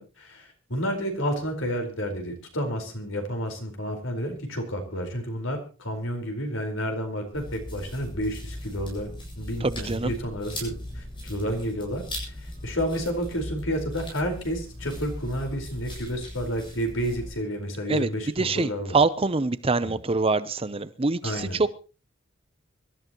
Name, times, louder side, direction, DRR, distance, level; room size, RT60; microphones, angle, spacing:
voice 1, 0.0-9.1 9.4-12.3 12.6-19.0 19.8-19.9 21.2-21.6, equal, 75° left, 4.7 m, -30 dB
sound 1, 7.3-17.3, left 1 dB, 25° left, 8.0 m, -38 dB
voice 2, 9.6-10.1 17.9-18.1 18.4-21.7, right 3 dB, 30° right, 0.7 m, -25 dB
25.0 x 13.0 x 3.0 m
head